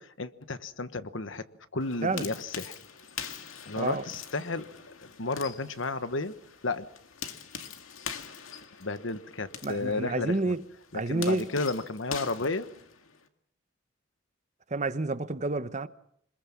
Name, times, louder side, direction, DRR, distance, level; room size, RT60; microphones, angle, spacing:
voice 1, 0.0-1.4 1.7-2.7 3.7-4.6 5.2-6.3 6.6-6.8 8.8-10.3 10.9-12.7, left 3 dB, 65° left, 1.3 m, -32 dB
sound 1, 1.8-13.3, left 7 dB, 90° left, 2.1 m, -43 dB
voice 2, 9.6-10.6 10.9-11.5 14.7-15.9, right 2 dB, 35° right, 1.0 m, -29 dB
26.0 x 21.5 x 7.3 m
head